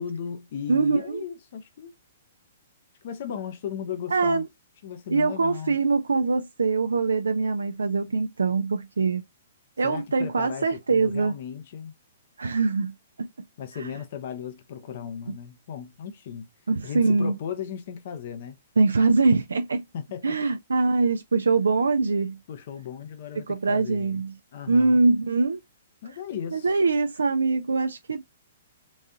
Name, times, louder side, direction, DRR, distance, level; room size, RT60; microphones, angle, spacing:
voice 1, 0.0-1.9 3.0-4.4 4.8-5.8 9.8-11.9 13.6-16.5 16.8-18.6 19.9-20.4 22.5-24.2 24.5-25.0 26.0-26.8, left 8 dB, 55° left, 0.7 m, -36 dB
voice 2, 0.7-1.2 4.1-4.5 5.1-9.2 9.8-11.3 12.4-13.3 13.8-13.9 16.7-17.3 18.8-19.8 20.2-22.4 23.5-24.3 24.7-25.6 26.5-28.2, right 3 dB, 80° right, 0.3 m, -23 dB
3.9 x 2.6 x 2.3 m
hypercardioid pair, 120°, 0 cm